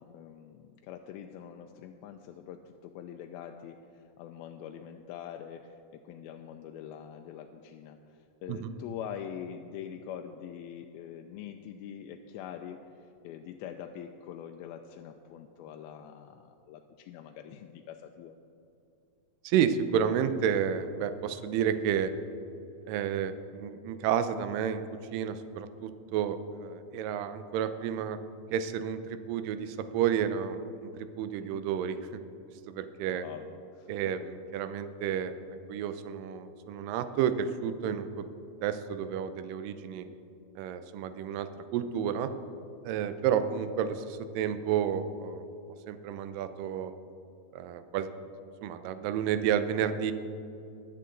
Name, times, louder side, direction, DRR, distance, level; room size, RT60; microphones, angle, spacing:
voice 1, 0.0-18.4 31.4-31.6 33.1-34.1 43.3-43.4, left 9 dB, 90° left, 5 dB, 2.4 m, -44 dB
voice 2, 19.4-22.1 22.9-24.8 25.1-28.2 28.5-32.2 32.7-33.2 33.9-35.3 35.7-38.3 38.6-40.1 40.6-42.3 42.8-45.5 45.9-46.9 47.5-48.3 48.6-50.1, right 8 dB, 80° right, 10 dB, 2.2 m, -31 dB
21.5 x 7.8 x 3.8 m, 2.6 s
omnidirectional pair, 4.2 m